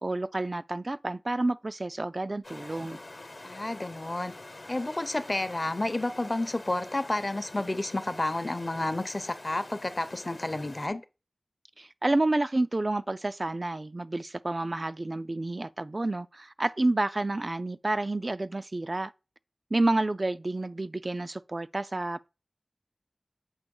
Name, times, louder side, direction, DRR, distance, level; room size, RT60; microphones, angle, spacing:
voice 1, 0.0-3.0 11.8-19.1 19.7-22.3, right 2 dB, 45° right, 0.3 m, -29 dB
sound 1, 2.4-10.9, left 2 dB, 60° left, 1.0 m, -46 dB
voice 2, 3.4-4.3 4.7-11.0, left 2 dB, 40° left, 0.7 m, -30 dB
8.0 x 3.0 x 5.3 m
wide cardioid pair, 60°, 0 cm